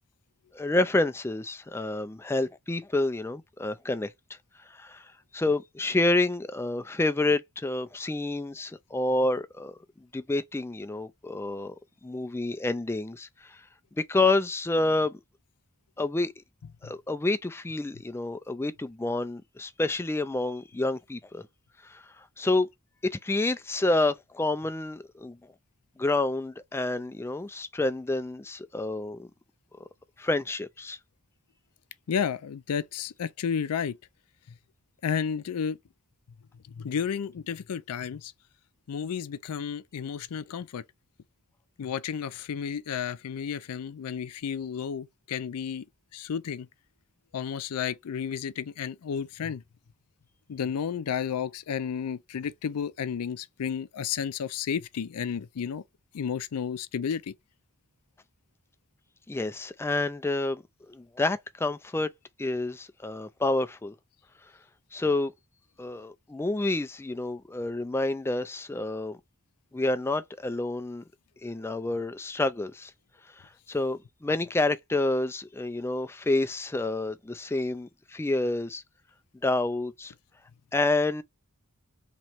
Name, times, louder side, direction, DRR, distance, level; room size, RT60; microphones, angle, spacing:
voice 1, 0.5-4.1 4.7-11.8 12.0-13.6 13.9-15.2 16.0-16.3 16.8-21.5 21.8-22.7 23.1-25.4 26.0-29.3 30.2-31.0 59.3-62.1 62.4-63.9 64.9-65.3 65.8-69.2 69.7-71.0 71.4-72.9 73.3-78.8 79.4-80.1 80.7-81.2, left 2 dB, 10° left, 0.3 m, -29 dB
voice 2, 32.1-34.0 35.0-35.8 36.7-38.3 38.9-40.8 41.8-45.8 46.1-46.7 47.3-49.6 50.5-55.8 56.1-57.3, left 7 dB, 85° left, 0.4 m, -32 dB
3.0 x 3.0 x 4.3 m
head